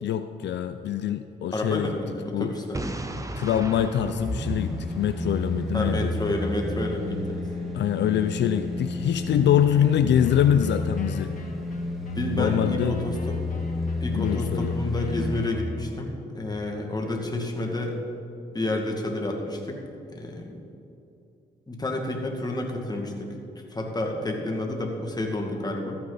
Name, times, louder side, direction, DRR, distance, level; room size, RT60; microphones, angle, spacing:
voice 1, 0.0-1.9 2.3-2.5 3.3-6.1 7.7-11.3 12.3-13.0 14.2-14.8, left 10 dB, 75° left, 10 dB, 0.4 m, -24 dB
voice 2, 1.5-2.8 5.7-7.5 12.1-13.4 14.0-18.0 18.5-19.8 20.1-20.6 21.7-23.3 23.7-26.0, left 2 dB, 20° left, 1 dB, 1.9 m, -30 dB
Boom, 2.7-5.6, right 1 dB, 20° right, 0.9 m, -36 dB
sound 1, 4.0-15.6 15.9-16.0, left 2 dB, ahead, 2.5 m, -31 dB
Wind instrument woodwind instrument, 10.2-16.2, left 2 dB, 45° left, 1.6 m, -47 dB
13.5 x 8.8 x 4.0 m, 2.7 s
cardioid pair, 60°, 18 cm